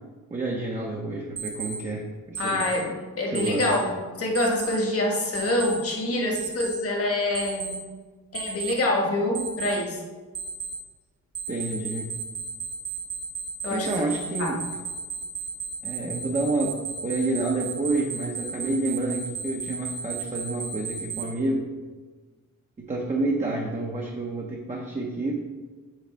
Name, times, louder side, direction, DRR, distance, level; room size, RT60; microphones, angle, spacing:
voice 1, 0.3-2.6 3.2-3.7 11.5-12.1 13.7-14.6 15.8-16.8 17.0-21.7 22.9-25.4, right 2 dB, 20° right, -2 dB, 0.7 m, -29 dB
Alarm, 1.4-1.7 2.3-2.7 3.3-3.7 4.3-4.7 5.3-5.7 6.3-6.7 7.3-7.7 8.3-8.7 9.3-9.7 10.3-10.7 11.3-21.2, right 6 dB, 50° right, 1.4 m, -33 dB
voice 2, 2.4-2.9 3.2-7.9 8.3-10.0 13.6-13.9 14.4-14.5, left 1 dB, 45° left, -1 dB, 1.4 m, -26 dB
7.6 x 4.0 x 3.4 m, 1.4 s
wide cardioid pair, 100°, 32 cm